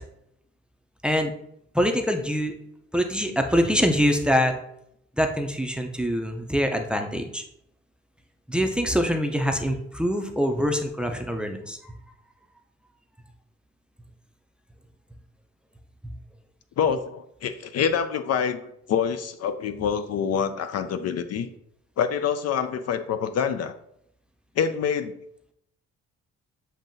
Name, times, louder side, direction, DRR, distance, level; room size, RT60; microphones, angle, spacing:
voice 1, 1.7-2.5 2.9-4.6 5.2-7.4 8.5-11.9, equal, 5° right, 5 dB, 0.5 m, -24 dB
voice 2, 16.8-18.6 18.9-21.5 22.0-23.8 24.6-25.1, left 7 dB, 55° left, 10 dB, 0.4 m, -26 dB
7.3 x 2.7 x 2.6 m, 0.74 s
cardioid pair, 90°, 30 cm